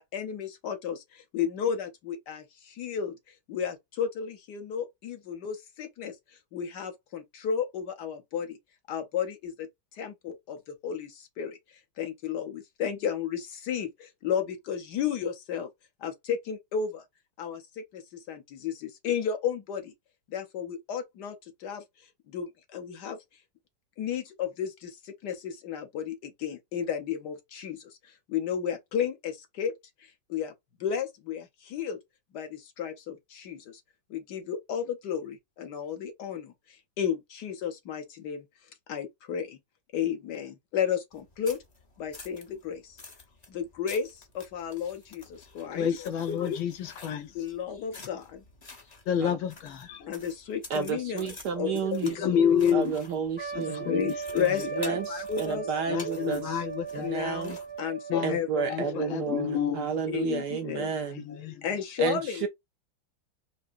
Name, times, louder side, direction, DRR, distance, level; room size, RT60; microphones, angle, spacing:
voice 1, 0.0-3.1 3.5-6.2 6.5-8.6 8.9-9.7 10.0-11.6 12.0-15.7 16.0-17.0 17.4-18.0 18.3-19.9 20.3-21.3 21.6-21.8 22.3-23.2 24.0-29.7 30.0-30.5 30.8-32.0 32.3-33.8 34.1-36.5 37.0-38.5 38.9-39.6 39.9-41.6 42.0-43.0 43.5-46.1 47.3-48.4 50.1-51.3 51.6-52.0 52.4-52.5 53.5-55.7 57.0-59.0 60.1-60.9 61.6-62.5, left 8 dB, 60° left, 1.4 m, -33 dB
sound 1, 41.1-57.8, left 3 dB, 35° left, 0.7 m, -50 dB
voice 2, 45.7-47.3 49.1-50.1 51.7-51.8 52.0-53.0 53.5-54.7 55.9-57.1 58.1-58.4 58.7-59.9 61.1-61.7, left 8 dB, 80° left, 1.6 m, -29 dB
voice 3, 50.7-52.1 52.7-53.9 54.8-56.4 56.9-57.6 58.2-61.2 62.0-62.5, right 6 dB, 70° right, 1.0 m, -31 dB
Trumpet, 53.4-58.4, right 6 dB, 10° right, 0.5 m, -38 dB
5.0 x 2.9 x 2.5 m
omnidirectional pair, 2.2 m